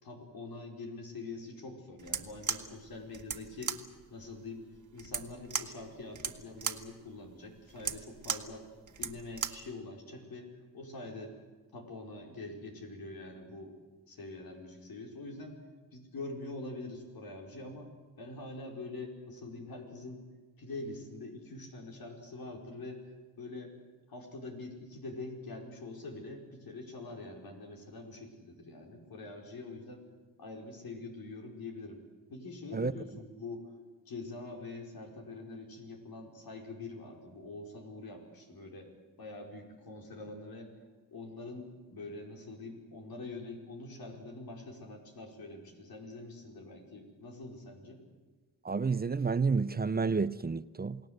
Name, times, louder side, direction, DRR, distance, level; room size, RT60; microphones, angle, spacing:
voice 1, 0.0-3.8 4.1-4.7 4.9-8.7 9.0-11.4 11.7-13.7 14.1-15.6 15.9-17.9 18.2-20.2 20.6-23.0 23.4-23.7 24.1-30.0 30.4-32.0 32.3-33.7 34.0-38.9 39.2-40.7 41.1-48.0, left 2 dB, 85° left, 4.8 m, -44 dB
sound 1, 2.0-9.7, right 6 dB, 60° right, 1.6 m, -38 dB
voice 2, 48.6-51.0, right 4 dB, 25° right, 0.7 m, -30 dB
29.0 x 18.5 x 7.9 m
cardioid pair, 80°, 35 cm